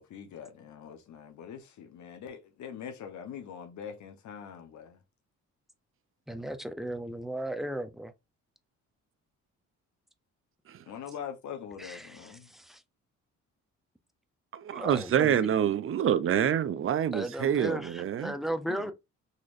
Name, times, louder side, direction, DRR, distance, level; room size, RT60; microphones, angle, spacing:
voice 1, 0.0-5.0 10.9-12.5 18.6-18.9, left 8 dB, 70° left, 1.0 m, -43 dB
voice 2, 6.3-8.1 11.8-12.2 12.5-12.8 14.7-15.5 17.1-18.9, right 1 dB, ahead, 0.6 m, -36 dB
voice 3, 14.5-18.4, right 9 dB, 45° right, 0.6 m, -27 dB
4.0 x 3.1 x 2.6 m
cardioid pair, 90°, 30 cm